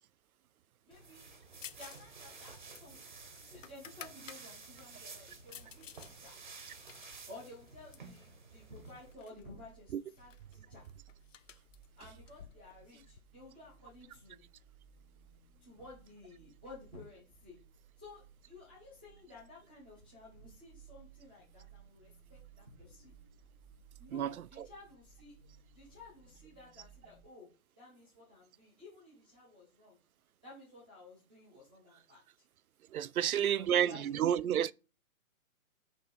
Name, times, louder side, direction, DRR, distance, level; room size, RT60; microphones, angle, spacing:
voice 1, 0.9-1.3 1.8-3.0 3.4-6.4 7.3-10.9 12.0-14.4 15.6-17.6 18.0-23.1 24.0-25.3 25.7-27.5 27.8-30.0 30.4-32.2 33.2-34.4, left 2 dB, 5° left, 0.8 m, -54 dB
sound 1, 0.9-9.1, right 4 dB, 35° right, 0.8 m, -52 dB
sound 2, 1.6-2.1 2.3-4.4 4.9-6.1 6.5-8.2 8.9-9.4 9.7-9.8 10.1-13.2, left 8 dB, 60° left, 0.6 m, -53 dB
sound 3, 8.8-27.2, right 6 dB, 30° left, 1.5 m, -61 dB
voice 2, 24.1-24.7 32.9-34.7, right 10 dB, 80° right, 0.5 m, -30 dB
5.3 x 3.4 x 5.2 m
hypercardioid pair, 175°, 43 cm